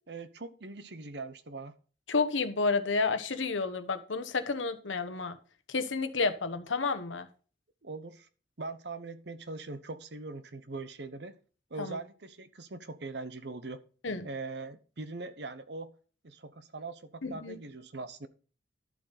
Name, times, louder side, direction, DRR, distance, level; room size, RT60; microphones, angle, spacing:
voice 1, 0.1-1.7 7.8-8.3 8.6-11.3 11.7-13.8 14.2-15.9 16.2-18.3, right 3 dB, 60° right, 13 dB, 1.0 m, -41 dB
voice 2, 2.1-5.4 5.7-7.3 11.8-12.0 14.0-14.3 17.2-17.6, left 4 dB, 90° left, 10 dB, 1.1 m, -30 dB
12.0 x 7.1 x 4.0 m, 0.39 s
head